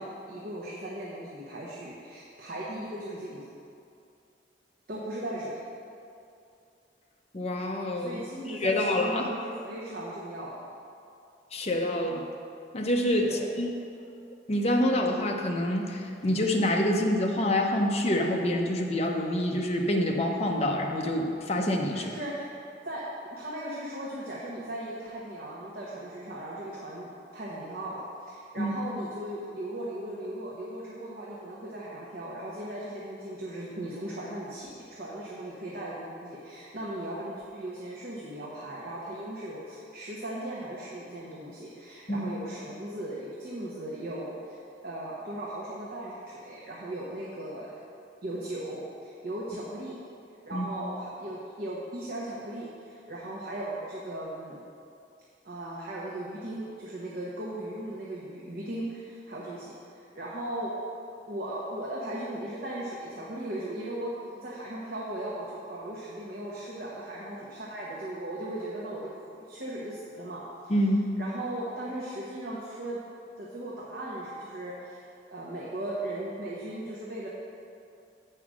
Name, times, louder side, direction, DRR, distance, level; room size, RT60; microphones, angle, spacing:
voice 1, 0.0-3.5 4.9-5.6 7.9-10.5 13.2-13.4 21.9-22.5 22.8-44.3 44.8-47.7 48.2-50.0 50.5-54.6 55.4-60.7 61.3-69.1 69.5-70.8 71.2-73.0 73.4-75.0 75.3-77.3, right 1 dB, 55° right, -6 dB, 1.1 m, -37 dB
voice 2, 7.3-8.2 8.6-9.2 11.5-12.3 12.7-13.7 14.5-22.0 28.6-28.7 42.1-42.3 50.5-50.7 70.7-71.1, left 1 dB, 35° left, 1 dB, 0.7 m, -26 dB
7.7 x 5.0 x 6.1 m, 2.5 s
head